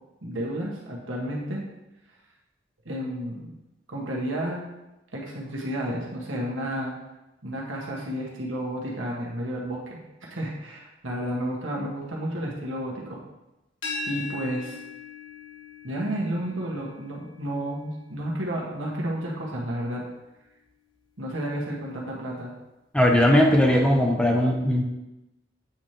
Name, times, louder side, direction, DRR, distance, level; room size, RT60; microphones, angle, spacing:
voice 1, 0.2-1.6 2.8-3.6 3.9-4.6 5.1-6.9 7.4-10.0 10.3-13.2 14.1-14.8 15.8-20.0 21.2-22.5 23.0-23.5, right 1 dB, 85° right, -3 dB, 1.6 m, -31 dB
sound 1, 13.8-19.6, left 3 dB, 70° left, 1.5 m, -40 dB
voice 2, 22.9-24.8, left 1 dB, 5° left, 0 dB, 0.5 m, -19 dB
8.3 x 4.9 x 2.9 m, 0.98 s
head